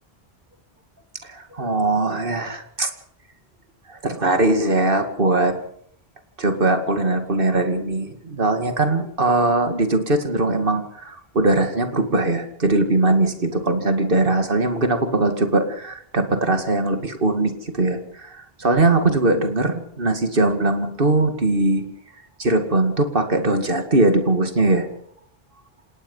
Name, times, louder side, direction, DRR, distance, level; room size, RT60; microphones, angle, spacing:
voice 1, 1.2-2.9 3.9-5.6 6.4-21.8 22.4-24.9, right 2 dB, 60° right, 7 dB, 2.5 m, -20 dB
28.0 x 17.5 x 5.6 m, 0.67 s
omnidirectional pair, 1.1 m